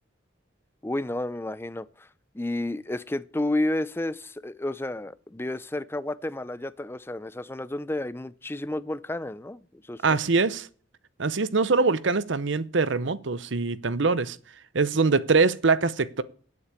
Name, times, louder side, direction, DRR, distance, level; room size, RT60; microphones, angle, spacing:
voice 1, 0.8-2.1 2.3-10.2, left 1 dB, 10° left, 0.5 m, -31 dB
voice 2, 10.0-10.7 11.2-14.4 14.7-16.2, right 4 dB, 70° right, 0.8 m, -23 dB
10.0 x 8.2 x 8.4 m
head